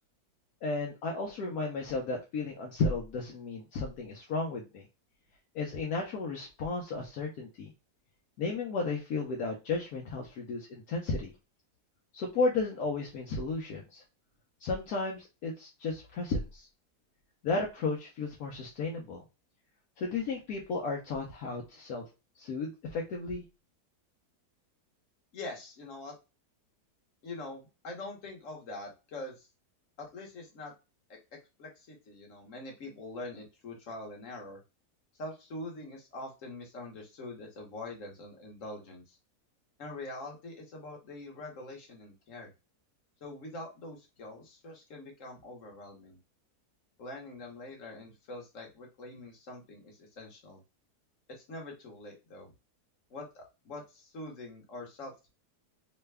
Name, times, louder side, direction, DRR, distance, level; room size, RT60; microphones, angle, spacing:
voice 1, 0.6-4.8 5.5-7.7 8.4-11.3 12.1-14.0 14.6-16.7 17.4-19.2 20.0-22.0 22.4-23.4, left 3 dB, 75° left, -1 dB, 1.1 m, -33 dB
voice 2, 25.3-26.2 27.2-29.5 30.0-30.7 31.1-34.6 35.2-39.2 39.8-42.5 43.2-46.2 47.0-50.6 51.3-52.5 53.1-55.3, left 2 dB, 55° left, 0 dB, 1.4 m, -44 dB
3.3 x 2.2 x 3.3 m, 0.27 s
omnidirectional pair, 1.7 m